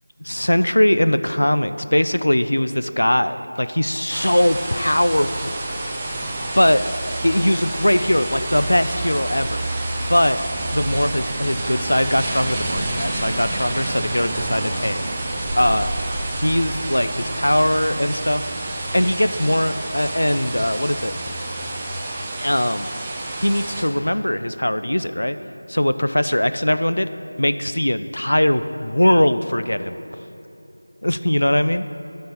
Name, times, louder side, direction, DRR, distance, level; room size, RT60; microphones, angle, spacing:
voice 1, 0.3-5.6 6.6-6.9 7.2-9.6 10.1-10.4 10.7-15.0 15.5-15.9 16.4-18.5 18.9-21.1 22.4-22.9 23.4-25.4 25.7-27.1 27.4-30.0 31.0-31.9, left 1 dB, 75° left, 11 dB, 0.3 m, -20 dB
sound 1, 4.1-23.8, right 2 dB, 10° right, 0.4 m, -28 dB
8.6 x 5.2 x 4.4 m, 2.9 s
figure-of-eight pair, 170°, 0 cm